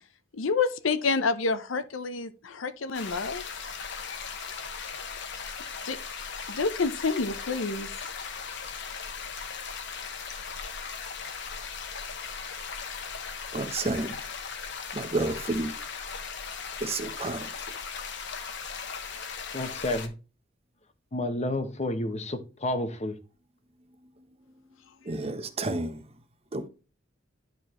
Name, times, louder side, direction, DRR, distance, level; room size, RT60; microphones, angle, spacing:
voice 1, 0.3-3.4 5.8-6.0 6.5-7.9, left 4 dB, 85° left, 0.7 m, -28 dB
sound 1, 2.9-20.1, left 6 dB, 65° left, 1.1 m, -38 dB
voice 2, 13.5-14.2 14.9-15.7 16.8-17.5 25.0-26.0 26.5-26.7, right 2 dB, 30° right, 0.9 m, -30 dB
voice 3, 19.5-20.1 21.1-23.2, left 1 dB, 35° left, 0.9 m, -30 dB
10.5 x 4.5 x 3.1 m
head